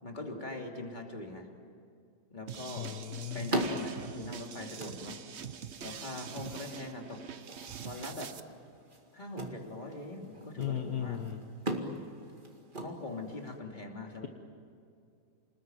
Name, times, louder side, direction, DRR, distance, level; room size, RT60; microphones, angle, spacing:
voice 1, 0.0-1.5 2.3-3.0 3.3-5.2 5.8-7.2 7.8-8.3 9.1-11.2 12.7-14.3, left 2 dB, 25° left, 1 dB, 3.0 m, -42 dB
sound 1, 2.5-13.6, right 1 dB, 30° right, 2.2 m, -41 dB
sound 2, 2.5-8.4, right 7 dB, 50° right, 1.0 m, -44 dB
voice 2, 2.8-3.5 10.6-11.4, left 10 dB, 65° left, 5 dB, 1.6 m, -36 dB
29.5 x 20.5 x 9.3 m, 2.4 s
omnidirectional pair, 1.8 m